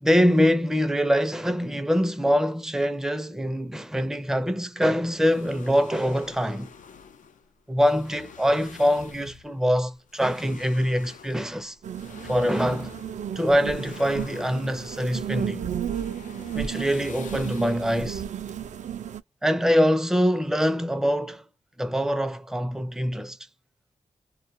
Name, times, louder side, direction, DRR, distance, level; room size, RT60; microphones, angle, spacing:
voice 1, 0.0-6.7 7.7-11.8 12.2-12.9 13.4-15.7 16.5-18.2 19.4-21.4 21.8-23.4, equal, 5° right, 0.4 m, -24 dB
sound 1, 5.2-19.1, left 6 dB, 80° left, 0.5 m, -47 dB
sound 2, 11.8-19.2, right 9 dB, 65° right, 0.4 m, -33 dB
2.3 x 2.2 x 2.6 m
cardioid pair, 65°, 13 cm